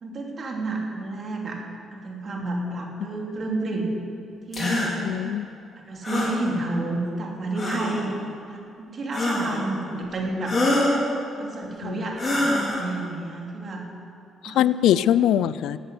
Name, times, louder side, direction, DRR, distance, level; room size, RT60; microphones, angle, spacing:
voice 1, 0.0-1.6 1.9-3.9 4.5-4.9 5.8-11.0 11.3-13.8 14.4-14.6, right 2 dB, 45° right, 0 dB, 2.8 m, -30 dB
sound 1, 4.5-4.9 6.0-6.4 7.5-8.0 9.1-9.6 10.4-11.0 12.2-12.8, left 1 dB, 25° left, 4.0 m, -24 dB
voice 2, 5.0-5.5 11.8-12.1 14.4-15.8, left 11 dB, 85° left, 16 dB, 0.3 m, -22 dB
12.5 x 8.0 x 9.6 m, 2.5 s
cardioid pair, 90°, 0 cm